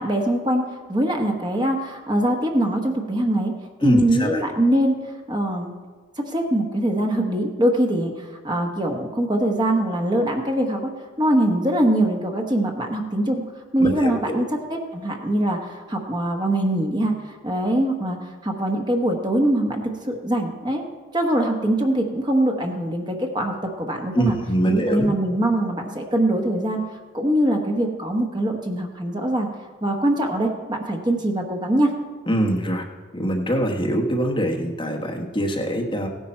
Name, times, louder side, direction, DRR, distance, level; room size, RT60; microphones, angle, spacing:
voice 1, 0.0-3.5 3.8-5.7 6.2-10.9 11.2-13.4 13.7-20.8 21.1-24.3 24.7-29.5 29.8-31.9, right 1 dB, 20° right, 2 dB, 1.1 m, -23 dB
voice 2, 3.8-4.4 13.8-14.4 24.1-25.1 32.3-32.8 33.1-36.1, right 1 dB, 25° left, 1 dB, 1.1 m, -23 dB
16.5 x 10.5 x 4.3 m, 1.5 s
head